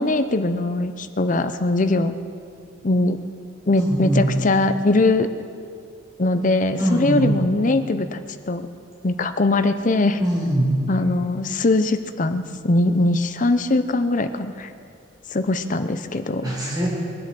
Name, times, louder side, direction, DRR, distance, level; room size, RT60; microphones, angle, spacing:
voice 1, 0.0-2.1 2.8-3.2 3.7-5.3 6.2-8.2 8.5-8.7 9.0-10.2 10.9-14.7 15.3-16.5, left 2 dB, 40° left, 10 dB, 0.7 m, -21 dB
voice 2, 3.8-4.2 6.8-7.3 10.2-10.7 16.4-16.9, right 1 dB, 20° right, -4 dB, 4.9 m, -22 dB
22.5 x 8.0 x 7.6 m, 2.4 s
head